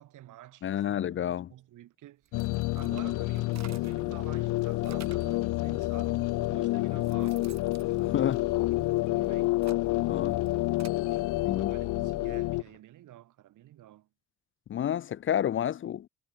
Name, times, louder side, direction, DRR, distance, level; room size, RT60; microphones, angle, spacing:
voice 1, 0.0-9.5 10.8-11.2 11.5-14.1, right 14 dB, 80° right, 7.9 m, -50 dB
voice 2, 0.6-1.5 8.1-8.5 10.1-10.4 11.5-11.7 14.7-16.1, left 10 dB, 45° left, 0.5 m, -30 dB
sound 1, 2.2-4.1 4.5-5.4 6.2-6.3 6.7-8.9 9.4-11.0, right 10 dB, 65° right, 4.7 m, -52 dB
sound 2, 2.3-12.6, left 19 dB, 90° left, 0.6 m, -29 dB
sound 3, 7.6-12.8, left 11 dB, 70° left, 6.4 m, -59 dB
cardioid pair, 90°, 30 cm